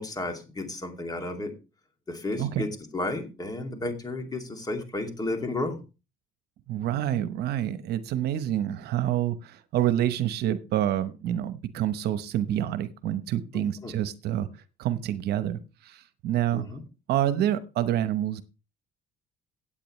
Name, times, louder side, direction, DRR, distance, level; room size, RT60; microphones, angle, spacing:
voice 1, 0.0-1.5 2.1-5.8 13.5-13.9 16.5-16.8, left 2 dB, 20° left, 5 dB, 2.6 m, -33 dB
voice 2, 6.7-14.5 14.8-16.6 17.1-18.4, right 11 dB, 75° right, 13 dB, 1.0 m, -27 dB
16.0 x 8.7 x 3.2 m, 0.30 s
cardioid pair, 110°, 17 cm